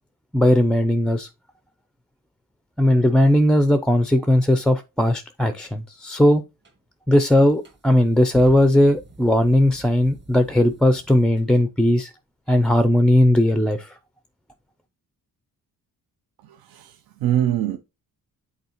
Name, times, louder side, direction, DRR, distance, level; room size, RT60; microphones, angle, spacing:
voice 1, 0.3-1.3 2.8-6.4 7.1-12.1 12.5-14.0, left 1 dB, ahead, 0.3 m, -18 dB
sound 1, 6.6-6.8 7.4-11.7, right 2 dB, 30° right, 1.6 m, -45 dB
voice 2, 16.4-17.8, right 11 dB, 85° right, 0.7 m, -24 dB
8.1 x 4.1 x 2.9 m
cardioid pair, 145°, 36 cm